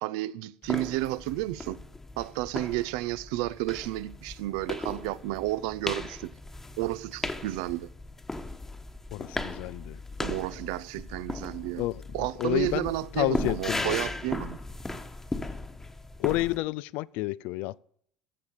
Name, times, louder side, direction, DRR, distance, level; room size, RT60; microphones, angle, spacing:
voice 1, 0.0-1.8 2.2-6.3 6.8-7.9 10.2-11.9 12.1-14.6, right 17 dB, 70° right, 0.5 m, -31 dB
sound 1, 0.6-16.6, left 2 dB, 15° left, 1.2 m, -37 dB
voice 2, 9.1-10.0 11.8-12.0 12.4-12.9 13.2-14.0 16.2-17.8, left 18 dB, 60° left, 0.4 m, -30 dB
14.5 x 7.1 x 5.3 m
hypercardioid pair, 70°, 3 cm